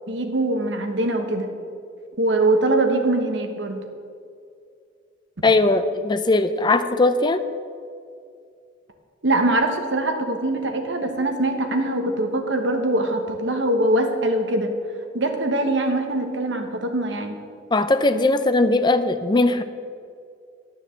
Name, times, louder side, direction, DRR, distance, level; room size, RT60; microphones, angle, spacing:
voice 1, 0.1-1.5 2.2-3.8 9.2-14.7 15.1-17.3, right 2 dB, 75° right, 5 dB, 1.2 m, -22 dB
voice 2, 5.4-7.4 17.7-19.6, left 2 dB, 25° left, 10 dB, 0.5 m, -19 dB
10.5 x 7.0 x 7.0 m, 2.3 s
head